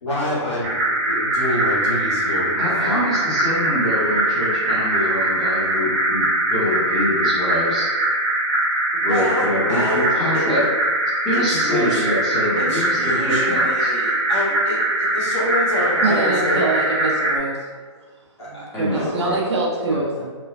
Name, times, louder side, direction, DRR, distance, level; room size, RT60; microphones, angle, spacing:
voice 1, 0.0-2.5 2.8-3.0 8.9-10.5 11.3-12.0 12.6-16.6 18.4-19.2, left 1 dB, 65° left, -9 dB, 1.5 m, -27 dB
sound 1, 0.6-17.4, right 1 dB, 25° right, 0.5 m, -22 dB
voice 2, 2.5-6.2 6.5-7.9 9.0-10.6 11.2-13.9 18.7-19.4 19.9-20.0, left 1 dB, ahead, -15 dB, 0.8 m, -25 dB
voice 3, 16.0-17.6 18.5-20.3, right 3 dB, 60° right, -3 dB, 0.7 m, -24 dB
3.1 x 2.1 x 2.5 m, 1.5 s
hypercardioid pair, 165°, 16 cm